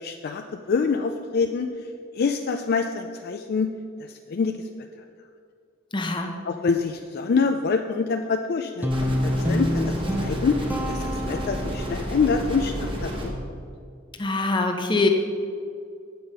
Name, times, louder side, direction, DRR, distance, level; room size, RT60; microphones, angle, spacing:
voice 1, 0.0-1.7 2.2-3.7 4.3-4.6 6.4-8.9 9.2-10.6 10.9-13.3, left 5 dB, 50° left, 6 dB, 0.4 m, -25 dB
voice 2, 5.9-6.3 14.2-15.1, left 2 dB, 25° left, 4 dB, 0.8 m, -23 dB
Guitar, 8.8-12.1, equal, 10° right, 0.5 m, -27 dB
sound 1, 8.9-13.3, equal, 25° right, 1.2 m, -31 dB
7.8 x 6.9 x 5.4 m, 2.3 s
head